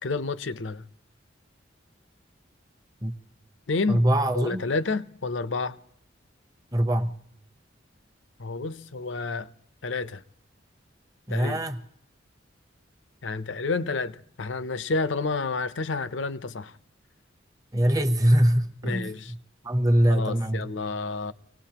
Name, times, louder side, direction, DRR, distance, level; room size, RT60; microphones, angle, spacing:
voice 1, 0.0-0.9 3.7-4.0 4.3-5.8 8.4-9.5 9.8-10.2 11.3-11.6 13.2-16.7 18.8-19.3 20.1-21.3, left 3 dB, 75° left, 0.7 m, -30 dB
voice 2, 3.9-4.6 6.7-7.1 11.3-11.8 17.7-19.4 19.6-20.7, equal, 20° right, 0.9 m, -23 dB
25.5 x 18.5 x 2.9 m
head